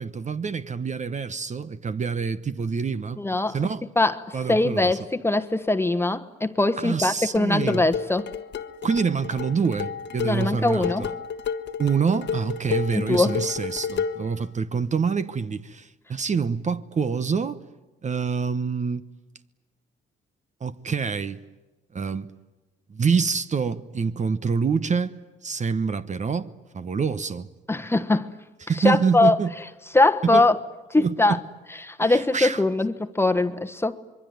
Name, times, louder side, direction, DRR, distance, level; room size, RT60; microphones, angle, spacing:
voice 1, 0.0-3.2 3.5-3.8 4.3-5.0 6.8-7.8 8.8-11.1 11.8-17.6 18.0-19.0 20.6-21.4 21.9-22.3 22.9-27.5 28.6-29.5 30.2-30.4 31.0-31.4 32.0-32.6, right 5 dB, 35° right, 1.0 m, -26 dB
voice 2, 3.2-3.6 4.0-8.3 10.2-11.1 12.9-13.3 27.7-28.3 28.8-29.4 29.9-30.6 30.9-31.4 31.8-34.0, left 2 dB, 10° left, 1.3 m, -22 dB
sound 1, 7.3-14.3, left 6 dB, 60° left, 1.3 m, -31 dB
26.0 x 22.5 x 9.4 m
cardioid pair, 90°, 20 cm